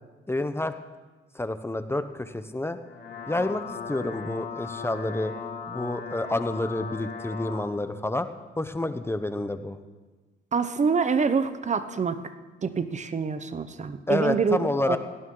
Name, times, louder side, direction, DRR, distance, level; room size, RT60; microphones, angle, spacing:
voice 1, 0.3-0.7 1.3-2.8 3.3-5.3 5.7-8.3 8.6-9.8 14.1-15.0, left 1 dB, 10° left, 10 dB, 0.9 m, -29 dB
sound 1, 2.7-7.7, left 5 dB, 60° left, 3.0 m, -37 dB
voice 2, 10.5-12.2 12.6-14.6 14.8-15.0, right 5 dB, 35° right, 11 dB, 0.9 m, -26 dB
17.5 x 17.0 x 3.9 m, 1.3 s
cardioid pair, 90°, 20 cm